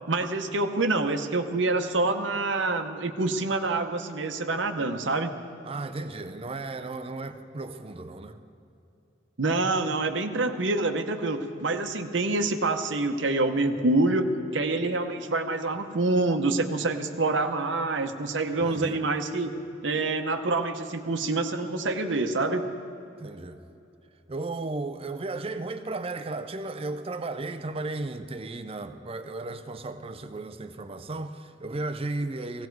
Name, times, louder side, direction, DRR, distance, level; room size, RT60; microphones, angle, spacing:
voice 1, 0.1-5.3 9.4-22.7, right 2 dB, 70° right, 0.9 m, -26 dB
voice 2, 5.6-8.4 18.6-19.0 23.2-23.6 24.3-32.7, right 2 dB, 30° right, 0.5 m, -35 dB
16.5 x 16.5 x 4.7 m
head